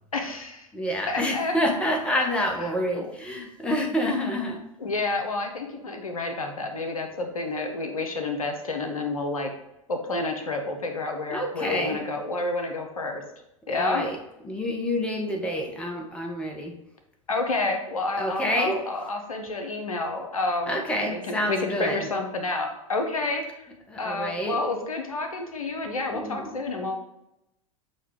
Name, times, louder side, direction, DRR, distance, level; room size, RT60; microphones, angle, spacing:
voice 1, 0.1-0.7 1.1-1.5 2.9-3.1 4.8-9.5 9.9-13.2 13.7-14.1 17.3-23.7 24.0-27.0, left 3 dB, 75° left, 4 dB, 0.7 m, -29 dB
voice 2, 0.7-4.6 11.3-12.0 13.7-14.2 14.4-16.7 18.2-18.8 20.7-22.0 23.9-24.6 26.1-26.6, equal, 5° left, 2 dB, 0.6 m, -28 dB
6.3 x 2.3 x 3.2 m, 0.87 s
figure-of-eight pair, 90°, 18 cm